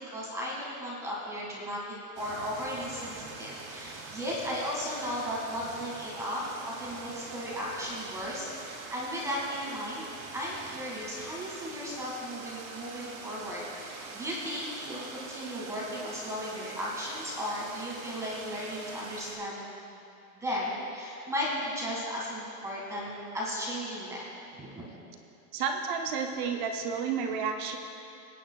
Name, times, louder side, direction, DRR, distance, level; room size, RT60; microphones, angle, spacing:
voice 1, 0.1-1.8 2.2-19.6 20.4-24.3 24.5-24.9, equal, 5° right, -5 dB, 1.7 m, -35 dB
sound 1, 2.2-19.4, right 4 dB, 65° right, 2.4 m, -44 dB
voice 2, 25.5-27.8, right 6 dB, 30° right, 4 dB, 0.5 m, -31 dB
21.5 x 9.3 x 2.3 m, 2.7 s
supercardioid pair, 160°, 47 cm